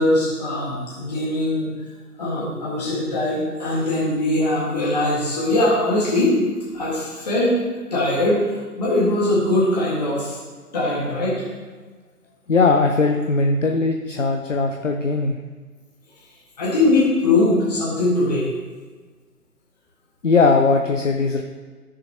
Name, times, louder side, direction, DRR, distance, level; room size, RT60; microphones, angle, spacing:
voice 1, 0.0-1.7 2.2-6.4 6.7-7.6 7.9-8.5 8.8-10.4 10.7-11.4 16.6-18.5, left 1 dB, 25° left, -7 dB, 1.8 m, -21 dB
voice 2, 12.5-15.4 20.2-21.4, left 3 dB, 50° left, 3 dB, 0.7 m, -19 dB
14.0 x 6.7 x 2.9 m, 1.4 s
figure-of-eight pair, 150°, 48 cm